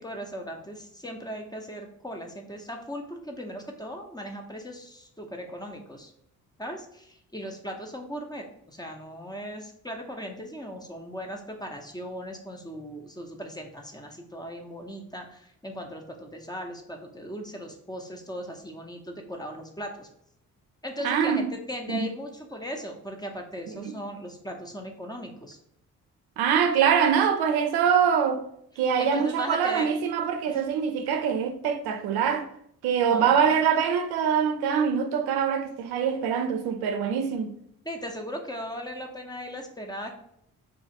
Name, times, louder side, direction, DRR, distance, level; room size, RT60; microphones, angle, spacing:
voice 1, 0.0-6.1 6.6-20.1 20.8-25.6 29.0-29.9 30.5-30.6 31.0-31.1 33.1-33.6 37.8-40.1, equal, 10° left, 0.6 m, -38 dB
voice 2, 21.0-21.5 21.9-22.1 23.7-23.9 26.4-28.4 28.8-32.5 32.8-37.5, right 7 dB, 75° right, 0.5 m, -24 dB
2.6 x 2.4 x 3.9 m
supercardioid pair, 55°, 38 cm